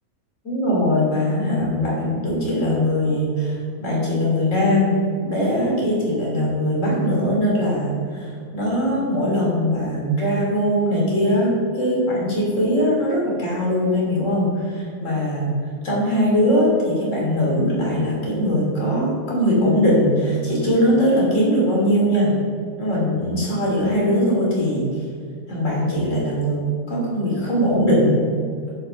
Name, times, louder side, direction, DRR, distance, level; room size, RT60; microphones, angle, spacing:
voice 1, 0.4-15.5 15.8-22.4 22.8-24.9 25.5-26.6 26.9-28.1, equal, 55° left, -4 dB, 3.3 m, -21 dB
10.0 x 5.4 x 6.7 m, 2.2 s
omnidirectional pair, 1.5 m